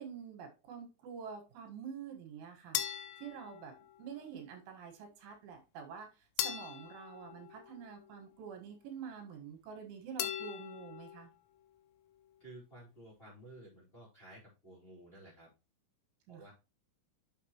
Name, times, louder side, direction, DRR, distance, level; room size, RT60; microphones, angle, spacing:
voice 1, 0.0-6.1 6.4-11.3 16.3-16.5, right 7 dB, 80° right, 3 dB, 4.0 m, -47 dB
sound 1, 2.8-4.3 6.4-8.2 10.2-11.3, left 11 dB, 80° left, 2.9 m, -40 dB
voice 2, 12.4-15.5 16.3-16.5, right 1 dB, 15° left, -4 dB, 3.8 m, -54 dB
8.4 x 6.5 x 2.9 m, 0.29 s
omnidirectional pair, 5.4 m